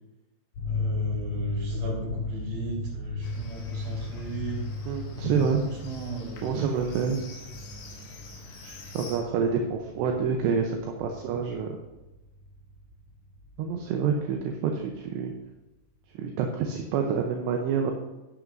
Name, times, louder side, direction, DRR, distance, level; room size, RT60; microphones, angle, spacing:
sound 1, 0.5-15.4, left 2 dB, 45° left, 3.9 m, -36 dB
voice 1, 0.7-4.6 5.6-6.7, right 3 dB, 60° right, -4 dB, 6.2 m, -37 dB
Livestock farm animals working animals, 3.2-9.2, left 3 dB, 65° left, 3.8 m, -48 dB
voice 2, 4.9-5.6 6.4-7.2 8.6-11.8 13.6-15.3 16.1-17.9, right 6 dB, 75° right, 3 dB, 2.8 m, -27 dB
12.5 x 10.5 x 2.6 m, 1.1 s
omnidirectional pair, 5.5 m